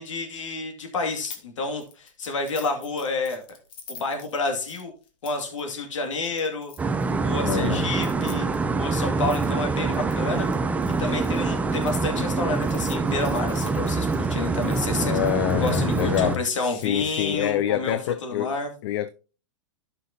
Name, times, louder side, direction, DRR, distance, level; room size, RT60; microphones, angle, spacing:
voice 1, 0.0-3.4 3.9-4.9 5.2-6.7 7.2-8.5 8.8-10.5 11.0-15.2 15.6-18.7, left 3 dB, 80° left, 2.3 m, -29 dB
sound 1, 1.3-1.5 1.8-7.1 7.9-12.0 12.5-14.8 15.2-16.9, left 6 dB, 35° left, 1.6 m, -47 dB
sound 2, 6.8-16.4, right 4 dB, 10° right, 0.5 m, -25 dB
voice 2, 7.4-7.9 15.0-18.6 18.8-19.1, left 13 dB, 55° left, 0.5 m, -26 dB
12.5 x 5.8 x 2.8 m
hypercardioid pair, 130°, 16 cm